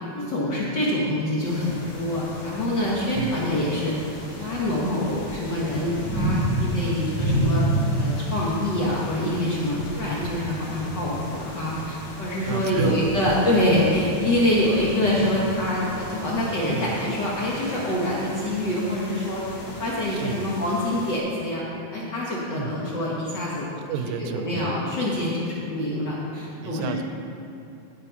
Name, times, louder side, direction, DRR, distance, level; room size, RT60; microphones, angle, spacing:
voice 1, 0.1-3.9 4.4-7.6 8.0-19.4 19.8-21.6 21.9-23.7 24.2-27.0, left 1 dB, 85° left, -6 dB, 0.9 m, -25 dB
sound 1, 1.4-21.2, right 1 dB, 65° left, 3.5 m, -32 dB
voice 2, 3.1-3.5 12.4-13.3 16.7-17.1 20.1-20.5 22.5-22.8 23.9-24.8 26.6-27.0, right 7 dB, 85° right, 9 dB, 2.4 m, -31 dB
14.5 x 5.4 x 5.7 m, 2.8 s
omnidirectional pair, 4.1 m